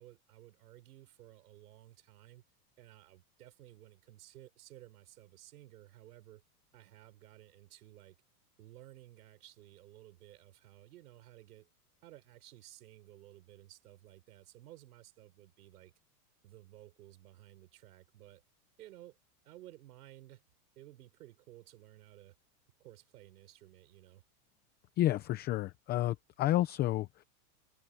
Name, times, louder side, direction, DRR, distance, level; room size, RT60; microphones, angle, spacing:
voice 1, 0.0-2.4 2.8-6.4 6.7-8.2 8.6-11.7 12.0-15.9 16.4-18.4 18.8-19.2 19.4-20.4 20.7-22.3 22.8-24.2, right 15 dB, 75° right, 6.8 m, -56 dB
voice 2, 25.0-27.2, left 14 dB, 20° left, 0.6 m, -30 dB
supercardioid pair, 150°, 47 cm